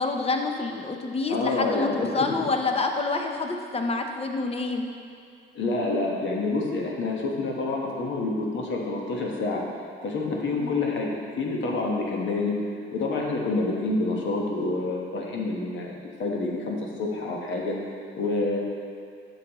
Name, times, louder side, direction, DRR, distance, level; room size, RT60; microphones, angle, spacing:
voice 1, 0.0-4.9 10.5-10.7, left 3 dB, 30° left, 4 dB, 0.7 m, -27 dB
voice 2, 1.3-2.5 5.5-9.6 10.0-12.6 12.9-17.8 18.1-18.6, left 3 dB, 70° left, -1 dB, 1.2 m, -28 dB
8.3 x 6.1 x 3.0 m, 2.3 s
cardioid pair, 90°, 20 cm